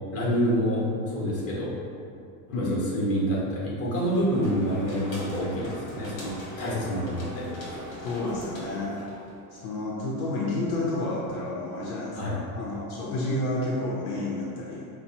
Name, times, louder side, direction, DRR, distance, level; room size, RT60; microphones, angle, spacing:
voice 1, 0.1-1.8 2.5-7.8 12.1-12.4, equal, 30° left, -6 dB, 1.3 m, -27 dB
voice 2, 2.5-2.9 8.0-9.0 9.5-14.9, left 2 dB, 70° left, -4 dB, 0.8 m, -30 dB
sound 1, 4.0-9.4, left 2 dB, 45° left, 1.3 m, -40 dB
5.4 x 2.3 x 2.8 m, 2.5 s
supercardioid pair, 125°, 49 cm